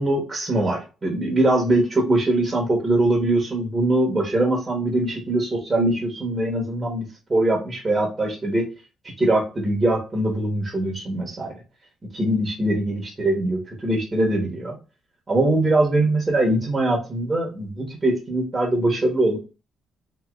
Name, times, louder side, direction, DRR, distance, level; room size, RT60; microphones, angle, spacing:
voice 1, 0.0-7.0 7.3-8.7 9.2-11.5 12.1-14.7 15.3-19.4, right 1 dB, 25° right, -3 dB, 1.2 m, -22 dB
3.0 x 2.7 x 2.4 m, 0.32 s
cardioid pair, 90°, 0 cm